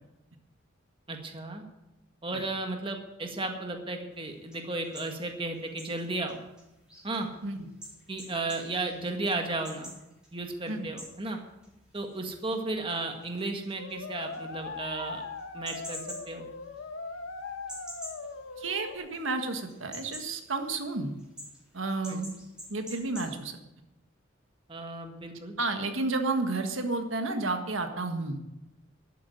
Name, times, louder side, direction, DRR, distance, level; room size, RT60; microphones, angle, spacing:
voice 1, 1.1-1.6 2.2-6.4 7.0-7.3 8.1-9.9 10.3-11.4 11.9-15.2 15.5-16.0 16.3-16.5 22.1-22.2 24.7-25.5, right 2 dB, 25° right, 4 dB, 1.6 m, -34 dB
sound 1, 4.1-19.3 19.6-23.4, equal, 5° right, 4.4 m, -48 dB
sound 2, 13.8-19.0, left 3 dB, 75° left, 1.3 m, -40 dB
voice 2, 18.6-21.1 21.7-22.4 22.7-23.6 25.6-28.4, right 3 dB, 85° right, 5 dB, 1.6 m, -31 dB
12.5 x 8.5 x 9.1 m, 0.95 s
head